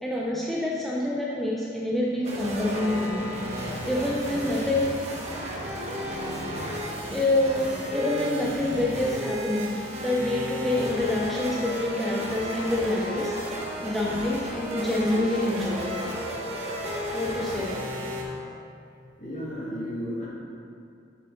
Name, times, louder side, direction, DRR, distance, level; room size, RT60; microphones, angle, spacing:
voice 1, 0.0-3.3 3.9-5.1 7.1-16.1 17.1-17.9, left 1 dB, ahead, -5 dB, 0.5 m, -27 dB
sound 1, 2.2-18.2, equal, 35° right, 1.1 m, -33 dB
voice 2, 13.6-14.0 19.2-20.3, equal, 40° left, -6 dB, 1.8 m, -34 dB
7.0 x 6.8 x 3.9 m, 2.5 s
head